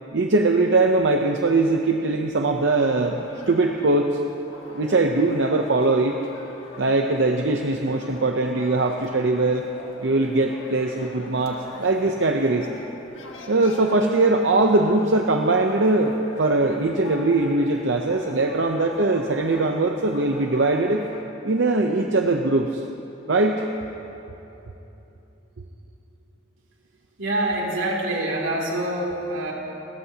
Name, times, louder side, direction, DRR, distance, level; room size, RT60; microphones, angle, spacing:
voice 1, 0.1-4.2 4.7-6.2 6.8-9.6 10.0-12.7 13.5-21.0 21.4-22.8 23.3-23.6, right 2 dB, 65° right, 3 dB, 0.7 m, -21 dB
sound 1, 2.6-21.2, left 2 dB, 85° left, 1.8 m, -43 dB
voice 2, 27.2-29.5, right 1 dB, 85° right, -3 dB, 2.8 m, -25 dB
29.5 x 14.0 x 2.9 m, 3.0 s
head